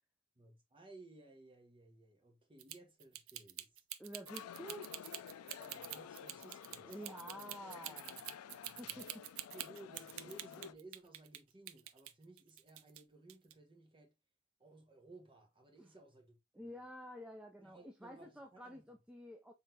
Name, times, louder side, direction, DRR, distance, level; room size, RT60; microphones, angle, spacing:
voice 1, 0.3-3.8 5.6-7.0 8.0-8.1 8.5-9.0 9.5-14.1 14.6-16.4 17.6-18.8, right 2 dB, 25° right, 1.2 m, -58 dB
sound 1, 2.6-11.4 11.7-13.0 13.3-13.5, right 13 dB, 70° right, 0.4 m, -46 dB
voice 2, 4.0-5.0 6.8-8.2 8.8-9.3 16.5-19.5, equal, 5° right, 0.4 m, -50 dB
sound 2, 4.3-10.7, left 8 dB, 75° left, 0.4 m, -52 dB
3.8 x 3.7 x 2.7 m
head